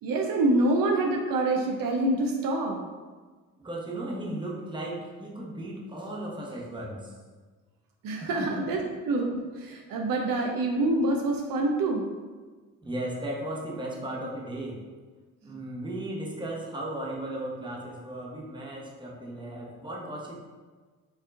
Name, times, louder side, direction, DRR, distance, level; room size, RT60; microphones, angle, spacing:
voice 1, 0.0-2.8 8.0-8.8 9.0-12.1, right 2 dB, 65° right, 1 dB, 0.6 m, -26 dB
voice 2, 3.6-7.1 8.2-8.5 12.8-14.8 15.4-20.3, right 1 dB, 15° right, -3 dB, 0.9 m, -36 dB
4.6 x 2.8 x 2.4 m, 1.4 s
supercardioid pair, 60°, 36 cm